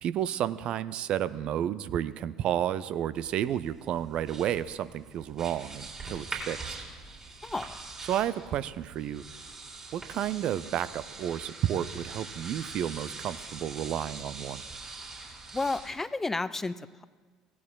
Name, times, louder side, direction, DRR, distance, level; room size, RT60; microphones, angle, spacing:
voice 1, 0.0-6.8 8.0-9.2 9.9-14.6, right 10 dB, 50° right, 15 dB, 0.4 m, -31 dB
sound 1, 3.1-15.9, right 3 dB, 25° right, 3.7 m, -43 dB
voice 2, 7.4-7.8 15.5-17.0, left 3 dB, 15° left, 16 dB, 0.4 m, -32 dB
17.0 x 12.0 x 2.3 m, 1.4 s
figure-of-eight pair, 60°, 2 cm